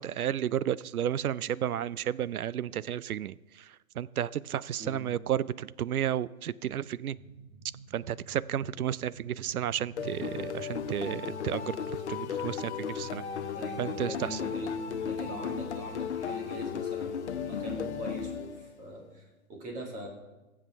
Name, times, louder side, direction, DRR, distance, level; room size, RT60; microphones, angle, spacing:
voice 1, 0.0-7.2 7.9-11.8 12.1-13.2 13.8-14.4, right 10 dB, 80° right, 19 dB, 0.5 m, -32 dB
sound 1, 7.1-15.7, right 4 dB, 35° right, 0.8 m, -51 dB
sound 2, 10.0-18.9, left 7 dB, 50° left, 0.8 m, -35 dB
voice 2, 13.5-14.7 15.0-20.1, equal, 20° right, 0 dB, 2.0 m, -42 dB
19.5 x 7.4 x 3.4 m, 1.1 s
hypercardioid pair, 140°, 43 cm